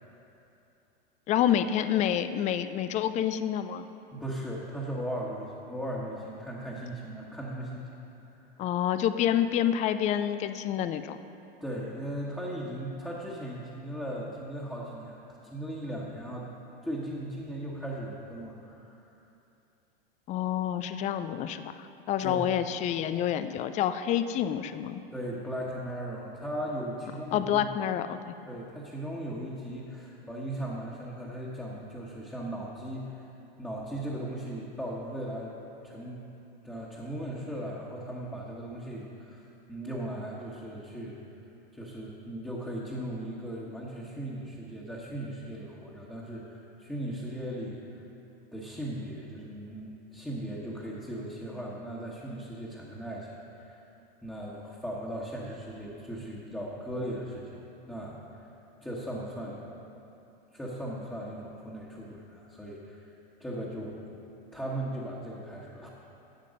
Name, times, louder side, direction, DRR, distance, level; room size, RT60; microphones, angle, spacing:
voice 1, 1.3-3.9 8.6-11.2 20.3-25.0 27.3-28.3, left 10 dB, 25° left, 11 dB, 0.4 m, -28 dB
voice 2, 4.1-7.9 8.4-8.5 11.6-15.2 15.5-16.5 16.8-19.0 22.2-22.5 25.1-27.7 28.5-33.2 33.6-35.6 35.8-36.2 36.6-39.4 39.7-41.2 41.7-48.0 48.5-53.8 54.2-57.6 57.9-58.5 58.8-59.6 60.5-63.1 63.4-64.0 64.5-65.9, right 1 dB, 5° left, -6 dB, 1.4 m, -37 dB
11.5 x 7.5 x 5.2 m, 2.8 s
hypercardioid pair, 105°, 30 cm